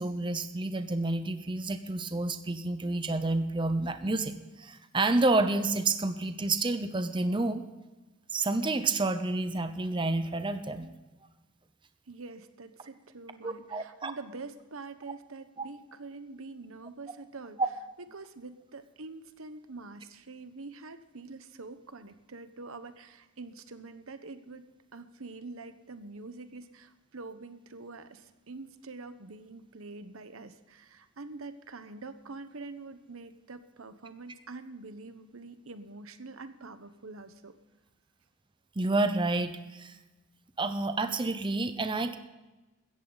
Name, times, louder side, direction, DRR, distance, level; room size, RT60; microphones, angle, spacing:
voice 1, 0.0-4.3 4.6-7.6 8.3-10.9 13.4-14.1 38.8-39.9 40.6-42.2, right 2 dB, 25° right, 9 dB, 0.8 m, -29 dB
voice 2, 12.1-17.6 18.1-24.6 24.9-37.5, right 3 dB, 80° right, 10 dB, 1.1 m, -45 dB
16.5 x 14.0 x 4.0 m, 1.1 s
head